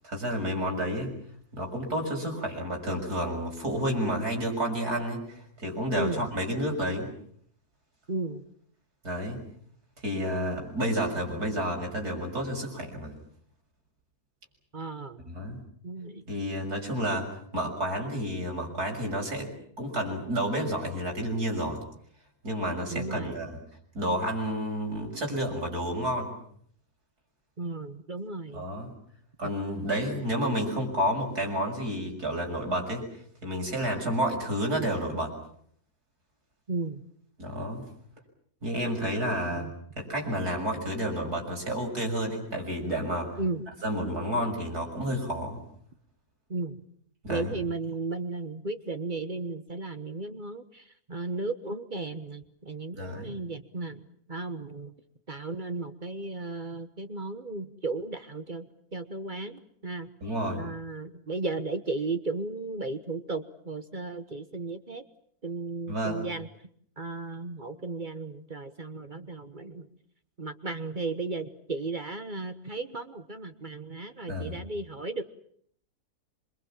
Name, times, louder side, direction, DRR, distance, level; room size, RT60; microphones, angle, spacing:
voice 1, 0.0-1.1 1.5-7.1 9.0-9.4 10.0-13.2 15.3-15.6 16.3-19.5 19.8-21.8 22.4-23.5 23.9-26.3 28.5-28.9 29.4-33.0 33.4-35.3 37.4-37.8 38.6-39.7 40.0-43.3 43.8-45.6 47.2-47.5 52.9-53.3 60.2-60.6 65.9-66.2 74.3-74.6, equal, 85° right, 2 dB, 7.1 m, -30 dB
voice 2, 5.9-6.3 8.1-8.4 14.7-15.3 15.8-16.2 22.9-23.4 27.6-28.7 36.7-37.0 39.4-39.7 43.4-43.6 46.5-46.8 47.3-54.0 54.3-54.9 55.3-60.1 60.6-65.0 65.4-66.5 67.0-69.9 70.4-75.2, right 3 dB, 35° right, 9 dB, 1.4 m, -35 dB
27.5 x 23.5 x 7.5 m, 0.64 s
omnidirectional pair, 1.6 m